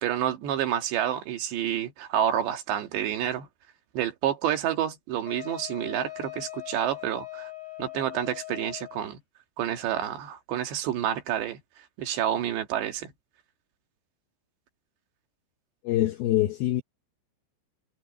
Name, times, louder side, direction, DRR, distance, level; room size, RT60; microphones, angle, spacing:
voice 1, 0.0-3.5 3.9-7.5 7.8-9.2 9.6-11.6 12.0-13.1, right 10 dB, 70° right, 3.8 m, -29 dB
Wind instrument woodwind instrument, 5.3-9.1, left 16 dB, 50° left, 7.0 m, -41 dB
voice 2, 15.8-16.8, left 14 dB, 75° left, 2.3 m, -24 dB
omnidirectional pair, 5.5 m